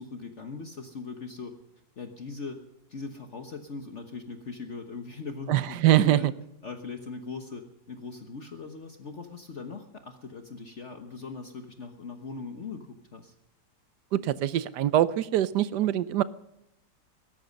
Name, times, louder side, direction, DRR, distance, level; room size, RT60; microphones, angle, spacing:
voice 1, 0.0-1.5 2.0-2.6 2.9-6.3 6.6-13.3, left 4 dB, 45° left, 5 dB, 1.4 m, -40 dB
voice 2, 5.5-6.3 14.1-16.2, right 13 dB, 75° right, 16 dB, 1.3 m, -23 dB
18.0 x 14.0 x 5.3 m, 0.83 s
omnidirectional pair, 1.8 m